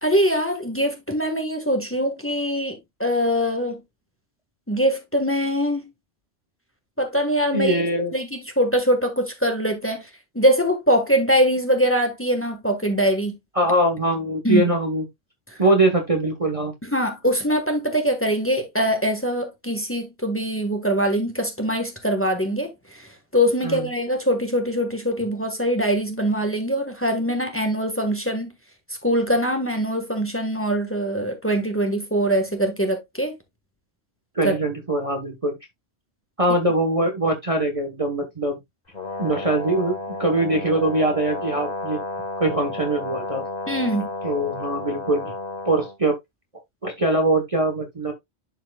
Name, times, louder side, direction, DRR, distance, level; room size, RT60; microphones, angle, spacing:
voice 1, 0.0-3.8 4.7-5.8 7.0-7.8 8.1-10.1 10.3-13.4 14.4-14.6 16.9-28.5 29.0-33.3 34.4-34.5 43.7-44.1, equal, 10° left, 1.4 m, -23 dB
voice 2, 7.5-8.1 13.5-15.1 15.6-16.7 23.6-23.9 34.3-35.6 36.4-38.6 39.2-42.0 42.4-43.4 44.2-45.3 45.7-46.1 46.8-48.1, right 1 dB, 30° right, 1.1 m, -22 dB
Brass instrument, 38.9-46.0, left 3 dB, 35° left, 1.7 m, -32 dB
11.5 x 4.5 x 2.3 m
omnidirectional pair, 1.2 m